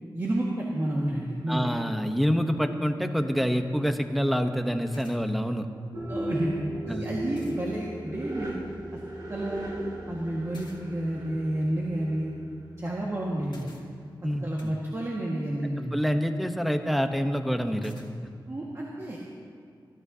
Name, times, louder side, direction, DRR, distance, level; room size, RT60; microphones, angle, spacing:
voice 1, 0.1-1.7 6.1-6.5 6.8-8.5 9.3-9.7 10.1-12.3 12.8-13.7 14.4-15.9 18.5-19.2, right 1 dB, 35° right, -5 dB, 1.6 m, -30 dB
voice 2, 1.5-5.7 6.9-7.1 14.2-14.7 15.9-18.0, equal, ahead, 6 dB, 0.9 m, -27 dB
sound 1, 4.9-5.2 6.8-6.9 7.3-7.6 10.5-10.8 13.5-13.8 14.6-14.7 17.8-18.1, left 3 dB, 75° left, 2.1 m, -51 dB
sound 2, 5.9-13.3, right 1 dB, 60° right, 2.8 m, -36 dB
28.0 x 12.5 x 2.8 m, 2.2 s
wide cardioid pair, 100°, 8 cm